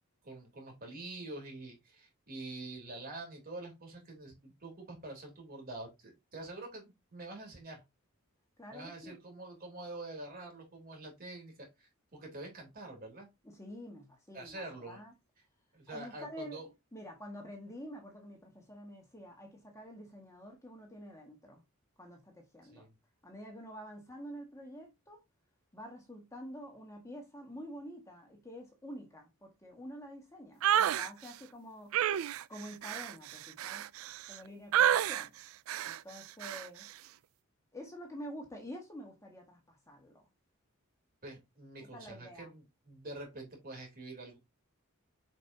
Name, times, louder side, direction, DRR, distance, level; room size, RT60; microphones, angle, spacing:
voice 1, 0.2-7.8 8.7-13.3 14.3-15.0 15.7-16.7 22.7-22.9 41.2-44.4, right 2 dB, 45° right, 3.5 m, -46 dB
voice 2, 8.6-9.2 13.4-15.1 15.9-16.6 16.9-21.6 22.0-22.9 23.2-25.2 25.7-32.0 32.5-33.9 34.3-35.3 35.8-36.9 37.7-40.2 41.8-42.5, equal, 15° left, 1.8 m, -48 dB
sound 1, 30.6-31.1 31.9-34.4 34.7-35.3 35.7-36.0 36.4-36.7, right 10 dB, 70° right, 0.3 m, -30 dB
7.3 x 5.5 x 2.8 m
head